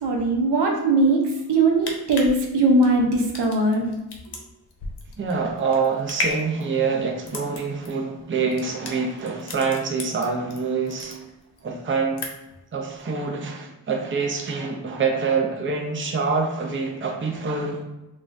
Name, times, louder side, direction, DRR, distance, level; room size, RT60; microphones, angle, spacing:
voice 1, 0.0-1.2 1.5-3.8, right 2 dB, 80° right, 0 dB, 0.7 m, -20 dB
sound 1, 1.6-10.6 10.9-11.6 11.9-12.6 13.0-13.1, left 2 dB, 75° left, 0.7 m, -34 dB
voice 2, 5.2-11.2 11.6-12.3 12.7-17.8, right 4 dB, 30° right, 1 dB, 0.5 m, -26 dB
3.7 x 2.4 x 2.5 m, 0.98 s
wide cardioid pair, 75°, 40 cm